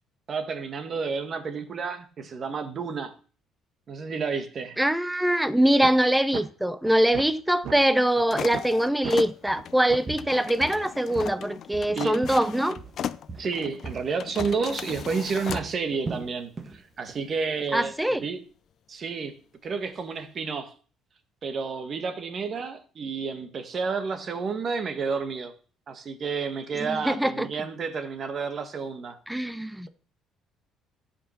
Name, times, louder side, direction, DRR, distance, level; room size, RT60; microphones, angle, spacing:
voice 1, 0.3-3.1 3.9-4.8 11.9-12.2 13.4-17.9 18.2-18.4 18.9-19.4 19.6-20.7 21.4-25.5 25.9-29.2, right 5 dB, 40° right, 1.7 m, -30 dB
voice 2, 4.8-12.8 17.7-18.2 26.8-27.5 29.3-29.9, right 1 dB, 5° right, 0.6 m, -23 dB
sound 1, 5.8-5.9 6.3-6.4 6.8-7.8 8.2-8.3 8.5-8.7 9.0-9.1 9.5-9.6 9.9-10.1, right 8 dB, 65° right, 1.4 m, -35 dB
sound 2, 8.3-15.7, left 9 dB, 50° left, 0.5 m, -37 dB
Walk footsteps, 9.5-9.7 10.1-11.4 11.7-13.0 13.3-16.8 17.1-17.4 17.8-17.9, right 4 dB, 20° right, 1.3 m, -39 dB
14.5 x 5.8 x 5.8 m
cardioid pair, 135°, 0 cm